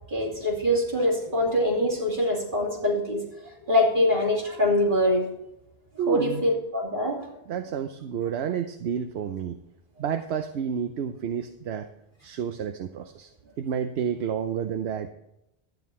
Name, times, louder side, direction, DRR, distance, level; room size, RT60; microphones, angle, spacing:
voice 1, 0.1-5.3 6.1-7.3, left 1 dB, 50° right, -2 dB, 3.0 m, -24 dB
voice 2, 6.0-6.4 7.5-9.6 10.0-11.9 12.2-13.3 13.6-15.1, right 8 dB, 80° right, 7 dB, 0.9 m, -30 dB
12.0 x 9.2 x 4.2 m, 0.83 s
omnidirectional pair, 1.1 m